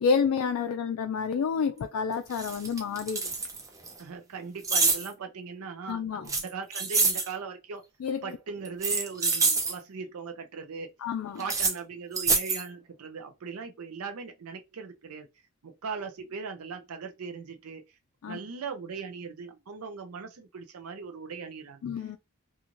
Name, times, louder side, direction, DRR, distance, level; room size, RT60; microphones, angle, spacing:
voice 1, 0.0-3.3 5.9-6.3 8.0-8.2 11.0-11.4 18.2-18.4 21.8-22.2, left 6 dB, 75° left, 0.3 m, -29 dB
sound 1, 1.8-1.9 2.3-3.9 4.6-5.1 6.3-7.3 8.6-9.7 11.4-11.7 12.1-12.6, right 4 dB, 15° right, 0.4 m, -26 dB
voice 2, 4.0-7.8 8.2-10.9 11.4-15.3 15.6-17.8 18.2-21.8, right 5 dB, 80° right, 0.5 m, -39 dB
3.0 x 2.4 x 2.5 m
head